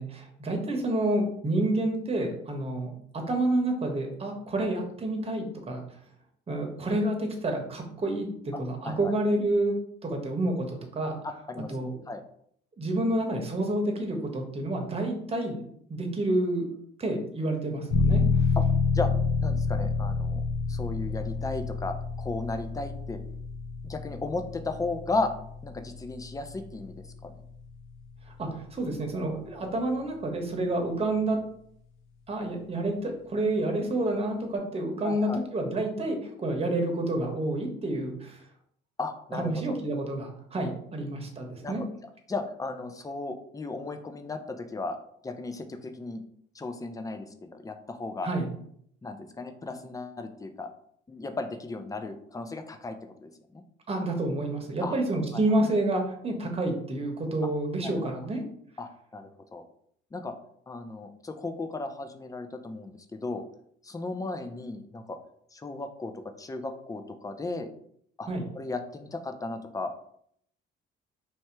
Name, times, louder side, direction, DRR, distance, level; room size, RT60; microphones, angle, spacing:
voice 1, 0.0-5.8 6.5-9.8 10.0-11.2 11.7-12.0 12.8-15.6 15.9-16.7 17.0-18.2 28.4-31.4 32.3-38.4 39.3-41.8 48.2-48.5 53.9-58.4 68.3-68.5, right 1 dB, 30° right, 2 dB, 1.1 m, -29 dB
voice 2, 11.2-12.2 18.6-18.7 18.9-19.1 19.4-20.4 20.7-23.2 23.8-25.3 25.6-26.9 27.2-27.4 35.0-35.4 39.0-39.8 41.6-41.9 42.3-45.0 45.2-46.2 46.5-48.3 49.0-50.7 51.1-53.6 54.8-55.0 57.8-58.1 58.8-59.6 60.1-60.3 60.7-63.4 63.8-65.2 65.5-66.1 66.4-67.7 68.2-68.3 68.5-69.9, left 3 dB, 15° left, 7 dB, 0.5 m, -35 dB
sound 1, 17.9-28.4, left 4 dB, 75° left, 0.8 m, -29 dB
3.2 x 2.8 x 4.6 m, 0.67 s
cardioid pair, 90°, 21 cm